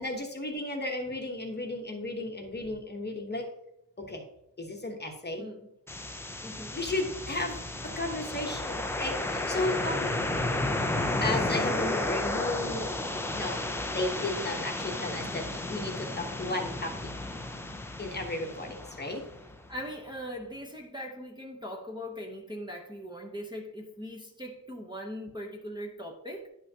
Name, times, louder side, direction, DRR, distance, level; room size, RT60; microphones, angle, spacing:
voice 1, 0.0-3.5 4.0-4.2 4.6-5.5 6.7-7.6 7.8-10.1 11.2-12.9 13.3-13.6 13.9-16.9 18.0-19.2, left 2 dB, 25° left, 2 dB, 1.0 m, -34 dB
voice 2, 5.4-5.7 6.4-6.8 9.6-9.9 19.7-26.5, equal, 10° right, 1 dB, 0.9 m, -40 dB
sound 1, 5.9-19.8, left 2 dB, 5° left, 0.4 m, -33 dB
10.5 x 5.6 x 2.8 m, 0.79 s
wide cardioid pair, 135°, 43 cm